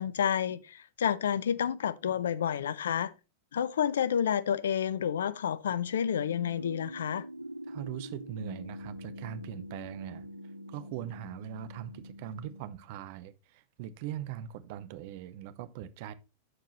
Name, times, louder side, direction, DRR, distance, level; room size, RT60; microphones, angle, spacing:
voice 1, 0.0-3.1 3.5-7.2, left 8 dB, 65° left, 0.4 m, -30 dB
sound 1, 6.0-12.7, equal, 90° right, 0.5 m, -44 dB
voice 2, 7.7-16.1, right 10 dB, 50° right, 0.6 m, -41 dB
12.5 x 4.6 x 2.9 m
figure-of-eight pair, 90°, 0 cm